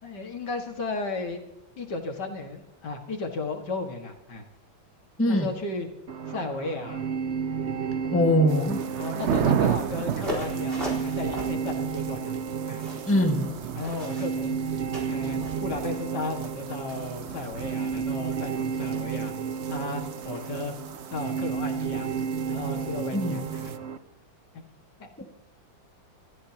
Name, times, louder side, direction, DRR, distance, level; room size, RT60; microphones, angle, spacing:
voice 1, 0.0-1.4 1.8-4.5 5.3-5.9 6.3-7.0 9.0-12.4 12.7-12.9 13.7-14.6 15.1-19.3 19.7-20.7 21.1-22.1 22.5-23.7 25.0-25.3, left 3 dB, 60° left, 4 dB, 2.5 m, -34 dB
sound 1, 6.1-24.0, right 6 dB, 45° right, 1.0 m, -32 dB
voice 2, 8.1-8.8 13.1-13.5 23.1-23.4, left 1 dB, 5° left, 2 dB, 1.6 m, -22 dB
sound 2, 8.5-23.8, right 8 dB, 65° right, 0.7 m, -34 dB
sound 3, 10.1-15.6, equal, 30° right, 4.5 m, -38 dB
28.0 x 14.0 x 2.9 m, 0.91 s
omnidirectional pair, 2.1 m